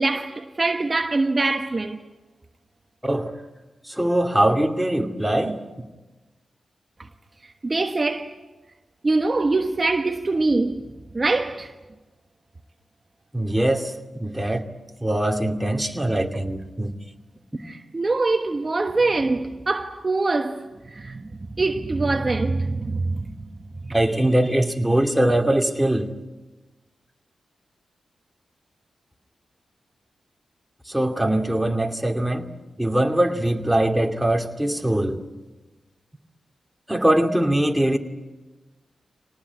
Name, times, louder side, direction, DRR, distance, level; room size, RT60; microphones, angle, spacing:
voice 1, 0.0-2.0 7.6-8.3 9.0-11.7 17.6-21.3 21.6-23.3 23.8-23.9, right 3 dB, 40° right, 1.3 m, -24 dB
voice 2, 3.9-5.6 13.3-13.9 14.2-14.7 15.0-17.0 23.9-26.1 30.9-32.5 32.8-35.2 36.9-38.0, right 1 dB, 5° right, 2.6 m, -22 dB
25.5 x 19.0 x 9.5 m
supercardioid pair, 40°, 0 cm